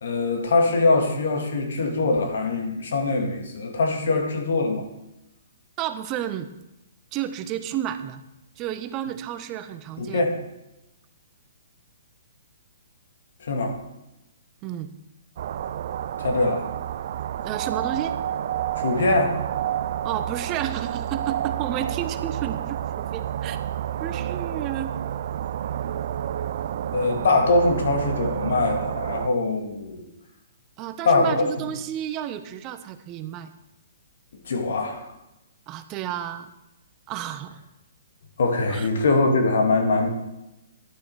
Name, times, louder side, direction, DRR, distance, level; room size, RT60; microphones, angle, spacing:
voice 1, 0.0-4.9 10.0-10.4 13.4-13.8 16.2-16.7 18.8-19.4 26.9-30.1 31.0-31.5 34.5-35.1 38.4-40.1, left 3 dB, 70° left, 3 dB, 2.0 m, -22 dB
voice 2, 5.8-6.5 7.1-8.2 8.6-10.3 14.6-14.9 17.4-18.2 20.0-23.6 24.0-25.0 30.8-33.5 35.7-36.5 37.1-37.6 38.7-38.9, right 11 dB, 30° right, 11 dB, 0.7 m, -31 dB
sound 1, 15.4-29.3, right 10 dB, 55° right, 0.4 m, -29 dB
11.0 x 7.1 x 4.8 m, 0.92 s
hypercardioid pair, 140°, 0 cm